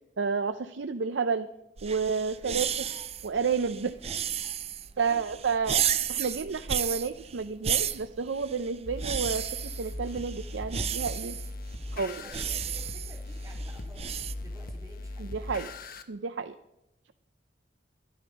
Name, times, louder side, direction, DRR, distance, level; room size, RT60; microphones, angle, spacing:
voice 1, 0.2-1.5 1.8-2.9 3.2-4.0 5.0-5.8 6.1-11.4 12.0-12.2 15.2-15.7 16.1-16.6, right 5 dB, 85° right, 10 dB, 0.5 m, -30 dB
sound 1, 1.8-14.3, right 9 dB, 35° right, 0.5 m, -33 dB
voice 2, 2.2-2.6 5.0-5.3 11.9-15.6, right 1 dB, 20° right, -1 dB, 2.9 m, -53 dB
sound 2, 8.8-16.0, left 2 dB, 55° left, 1.1 m, -39 dB
12.5 x 12.0 x 5.3 m, 0.90 s
head